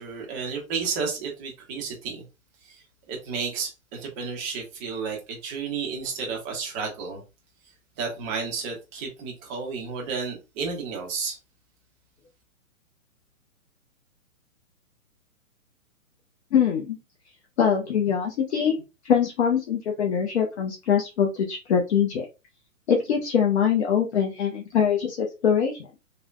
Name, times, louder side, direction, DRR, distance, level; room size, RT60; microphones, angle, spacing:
voice 1, 0.0-2.2 2.6-7.2 8.0-11.4, right 5 dB, 15° right, 0.5 m, -32 dB
voice 2, 16.5-17.0 17.6-18.8 19.0-22.3 22.9-25.9, left 7 dB, 50° left, 0.7 m, -23 dB
3.2 x 2.1 x 2.4 m
hypercardioid pair, 130°, 42 cm